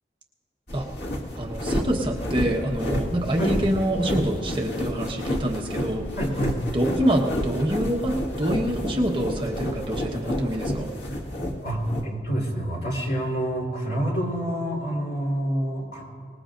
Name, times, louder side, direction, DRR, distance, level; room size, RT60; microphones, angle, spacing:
sound 1, 0.7-12.1, equal, 70° left, 1.8 m, -30 dB
voice 1, 1.4-6.1 6.7-10.9, right 1 dB, 30° right, 0 dB, 1.2 m, -26 dB
voice 2, 6.1-6.6 11.6-16.1, right 1 dB, 55° left, -2 dB, 4.0 m, -27 dB
24.5 x 20.0 x 2.6 m, 2.3 s
head